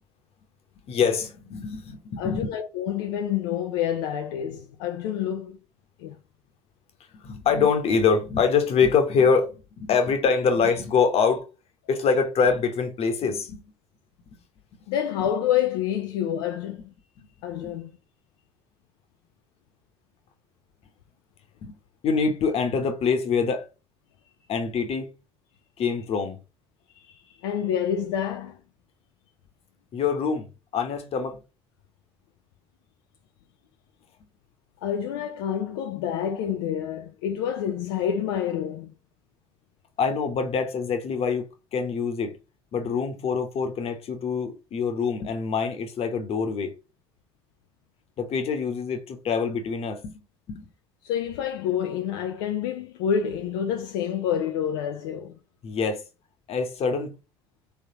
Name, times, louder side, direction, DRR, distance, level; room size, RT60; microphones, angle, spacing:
voice 1, 0.9-2.5 7.1-9.5 9.8-11.5 11.9-13.7 17.2-17.3 17.6-17.7 21.6-21.7 22.0-23.6 24.5-25.1 25.8-26.4 29.9-31.4 40.0-42.3 42.7-46.7 48.2-50.2 50.5-50.7 55.6-56.0 56.5-57.2, left 5 dB, 50° left, 1.1 m, -25 dB
voice 2, 2.2-5.6 6.0-6.2 14.9-16.8 17.4-18.0 26.9-28.6 34.8-38.9 51.0-55.4, left 9 dB, 75° left, 0.4 m, -28 dB
3.4 x 3.4 x 2.9 m
hypercardioid pair, 60°, 13 cm